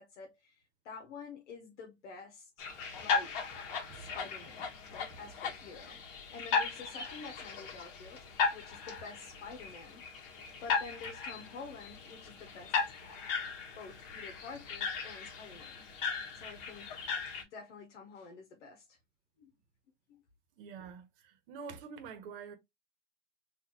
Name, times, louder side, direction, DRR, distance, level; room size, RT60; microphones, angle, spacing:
voice 1, 0.0-2.7 2.9-3.5 3.9-10.0 10.6-12.8 13.8-15.8 16.3-17.0 17.4-19.0 19.4-19.5 20.1-20.2, left 4 dB, 65° left, 1.1 m, -49 dB
sound 1, 2.6-17.4, left 5 dB, 45° left, 1.4 m, -37 dB
voice 2, 3.8-4.2 5.2-5.5 20.6-22.5, right 5 dB, 45° right, 1.2 m, -47 dB
4.0 x 2.7 x 2.9 m
hypercardioid pair, 150°, 38 cm